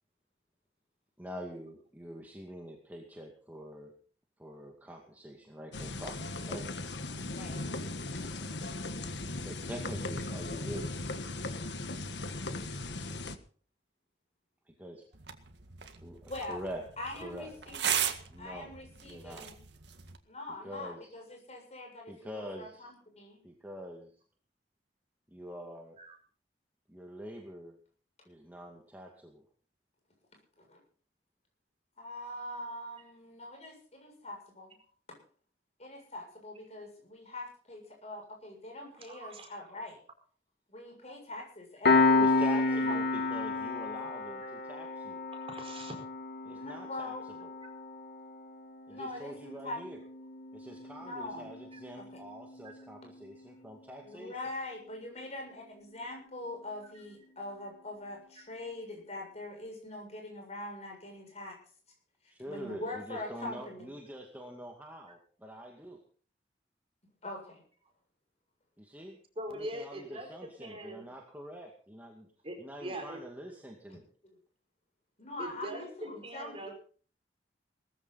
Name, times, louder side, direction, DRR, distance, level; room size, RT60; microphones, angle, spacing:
voice 1, 1.2-4.0 4.4-6.7 8.2-8.5 9.4-10.9 14.8-15.0 15.9-16.9 17.2-17.5 18.3-18.7 19.0-19.5 20.6-21.1 22.1-22.9 23.4-24.1 25.3-26.0 26.9-27.8 28.3-29.4 42.2-45.2 46.4-47.1 47.4-47.5 48.9-50.0 50.5-54.4 62.3-66.0 68.8-69.2 69.5-72.3 72.6-74.0, equal, 10° right, 1 dB, 2.2 m, -45 dB
sound 1, 5.7-13.4, left 2 dB, 80° left, 1.5 m, -38 dB
voice 2, 7.3-7.6 16.3-16.7 17.0-18.1 18.4-19.6 20.3-23.5 30.6-30.8 32.0-34.7 35.1-35.2 35.8-40.0 40.7-42.2 42.5-42.6 42.9-43.0 46.5-47.2 48.9-49.8 51.0-51.5 52.0-52.2 54.0-61.6 62.5-63.9 67.2-67.6 74.2-74.3 75.2-76.7, left 2 dB, 40° left, 2 dB, 7.3 m, -43 dB
sound 2, 15.1-20.2, right 9 dB, 85° right, 2.0 m, -37 dB
voice 3, 39.0-39.5 45.3-45.9 51.7-51.8 52.6-52.7 56.9-57.0 69.4-71.1 72.4-73.2 75.4-76.7, right 1 dB, 35° right, 4 dB, 5.0 m, -42 dB
Piano, 41.8-52.9, left 3 dB, 60° left, 2.0 m, -31 dB
19.0 x 15.0 x 4.2 m, 0.44 s
head